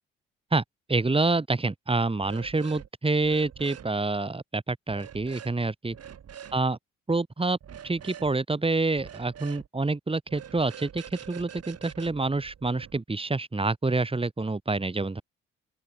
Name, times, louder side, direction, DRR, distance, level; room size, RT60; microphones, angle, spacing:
voice 1, 0.5-6.0 6.5-6.8 7.1-7.6 7.8-15.2, right 3 dB, 15° right, 2.9 m, -27 dB
sound 1, 2.2-2.9 3.2-3.9 4.9-5.5 5.9-6.6 7.6-8.3 9.0-9.7 10.3-13.0, right 9 dB, 50° right, 5.1 m, -45 dB
open air
figure-of-eight pair, 45°, 33 cm